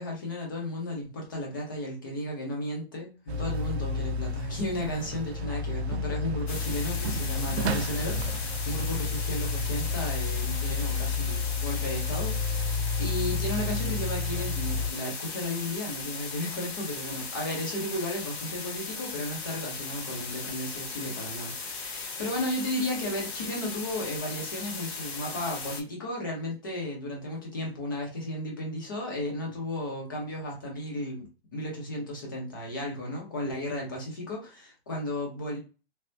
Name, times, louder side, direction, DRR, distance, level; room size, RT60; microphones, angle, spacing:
voice 1, 0.0-31.2 31.5-35.6, left 1 dB, 20° left, -1 dB, 0.6 m, -34 dB
sound 1, 3.3-14.9, left 3 dB, 80° right, 0.5 m, -31 dB
sound 2, 6.5-25.8, left 4 dB, 75° left, 1.3 m, -37 dB
3.3 x 2.0 x 2.6 m, 0.32 s
hypercardioid pair, 170°, 32 cm